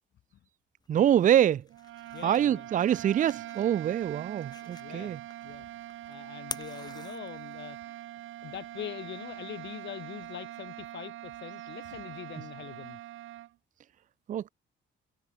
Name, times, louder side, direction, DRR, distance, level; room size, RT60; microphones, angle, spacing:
sound 1, 0.8-7.8, left 3 dB, 20° left, 1.3 m, -48 dB
voice 1, 0.9-1.6 2.2-5.2 14.3-14.5, right 10 dB, 40° right, 0.4 m, -25 dB
sound 2, 1.7-13.5, right 14 dB, 85° right, 2.2 m, -43 dB
voice 2, 2.1-2.7 4.8-5.1 5.4-5.7 6.1-7.9 8.4-13.0, left 11 dB, 65° left, 1.2 m, -43 dB
cardioid pair, 90°, 20 cm